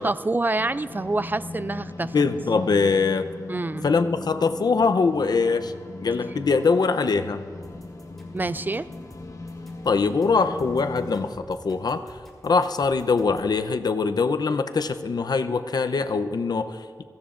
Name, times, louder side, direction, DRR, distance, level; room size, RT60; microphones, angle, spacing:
voice 1, 0.0-2.1 3.5-3.9 8.3-8.9, right 2 dB, 25° right, 15 dB, 0.3 m, -26 dB
sound 1, 0.6-11.3, left 2 dB, 50° left, 1.0 m, -39 dB
voice 2, 2.1-3.3 3.8-5.7 6.0-7.4 9.8-12.2 12.4-17.0, left 4 dB, 75° left, 9 dB, 0.6 m, -23 dB
sound 2, 7.6-13.5, equal, 5° left, 3.3 m, -48 dB
24.0 x 15.5 x 2.5 m, 2.1 s
wide cardioid pair, 90°, 7 cm